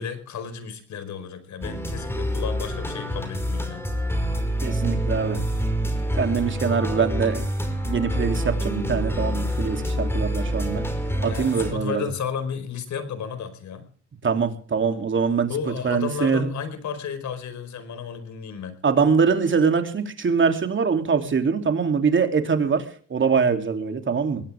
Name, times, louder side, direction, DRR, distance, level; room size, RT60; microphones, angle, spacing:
voice 1, 0.0-3.8 11.3-13.9 15.5-18.8, left 7 dB, 70° left, 10 dB, 4.8 m, -33 dB
sound 1, 1.6-11.7, equal, 10° left, 5.4 m, -26 dB
voice 2, 4.6-5.4 6.2-7.5 7.8-10.8 11.2-12.0 14.2-15.5 15.8-16.5 18.8-22.8 23.1-24.4, right 5 dB, 40° right, 6 dB, 3.1 m, -23 dB
22.0 x 17.5 x 3.6 m, 0.43 s
cardioid pair, 90°, 30 cm